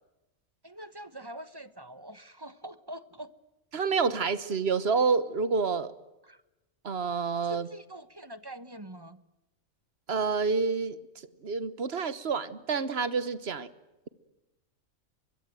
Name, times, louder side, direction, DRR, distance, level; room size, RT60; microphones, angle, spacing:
voice 1, 0.6-3.3 6.2-6.4 7.4-9.2, right 1 dB, 20° right, 1.0 m, -44 dB
voice 2, 3.7-5.9 6.8-7.7 10.1-11.0 11.4-13.7, right 5 dB, 50° right, 1.5 m, -28 dB
24.0 x 22.5 x 9.2 m
omnidirectional pair, 1.4 m